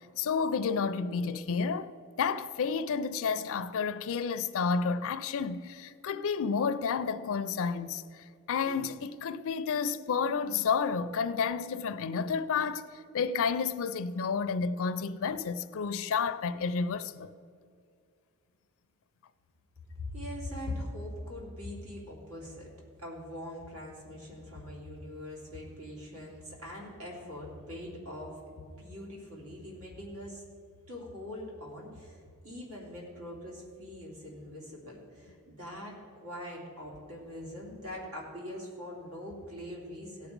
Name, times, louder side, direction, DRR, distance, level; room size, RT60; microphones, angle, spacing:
voice 1, 0.2-1.9 2.2-12.9 13.1-17.3, left 5 dB, 65° left, 0.4 m, -31 dB
voice 2, 19.9-22.7 23.0-30.4 30.9-40.3, left 1 dB, 90° right, 3.0 m, -42 dB
17.0 x 6.0 x 5.2 m
head